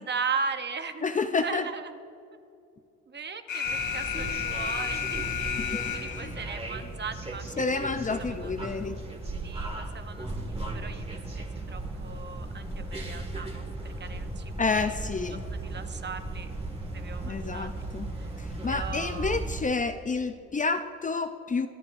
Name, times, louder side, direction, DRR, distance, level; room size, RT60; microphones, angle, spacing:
voice 1, 0.0-1.0 1.4-2.0 3.1-5.3 5.9-8.5 9.4-15.0 15.3-16.5 16.9-17.7 18.1-18.3 18.7-19.4, right 5 dB, 35° right, 8 dB, 0.9 m, -38 dB
voice 2, 1.0-1.7 6.2-6.3 7.6-9.0 14.6-15.4 17.2-18.1 18.4-21.7, left 4 dB, 25° left, 9 dB, 0.5 m, -29 dB
Alarm, 3.5-6.5, left 7 dB, 75° left, 1.7 m, -32 dB
sound 1, 3.6-19.6, right 2 dB, 20° right, 1.8 m, -36 dB
23.5 x 11.5 x 2.6 m, 2.6 s
cardioid pair, 90°, 30 cm